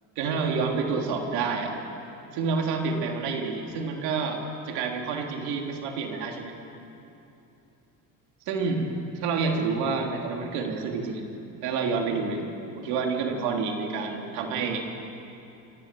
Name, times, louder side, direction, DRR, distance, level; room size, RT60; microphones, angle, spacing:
voice 1, 0.1-1.7 2.3-6.6 8.5-8.9 9.1-11.2 11.6-12.5 12.7-14.8, right 4 dB, 80° right, 2 dB, 3.4 m, -28 dB
28.0 x 15.0 x 7.7 m, 2.8 s
supercardioid pair, 80°, 39 cm